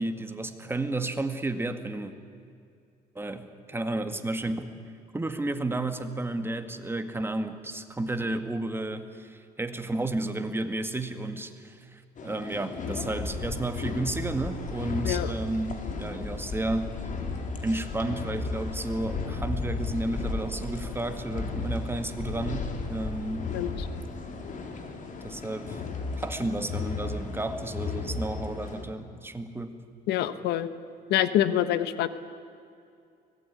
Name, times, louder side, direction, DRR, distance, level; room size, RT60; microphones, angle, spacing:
voice 1, 0.0-2.1 3.2-4.7 5.1-17.0 17.6-23.5 25.2-25.8 26.2-29.8, right 2 dB, 15° right, 8 dB, 1.9 m, -32 dB
sound 1, 12.2-28.8, left 4 dB, 50° left, 3.8 m, -34 dB
voice 2, 30.1-30.7 31.1-32.1, left 12 dB, 85° left, 13 dB, 1.3 m, -25 dB
24.0 x 19.0 x 9.7 m, 2.4 s
cardioid pair, 110°, 17 cm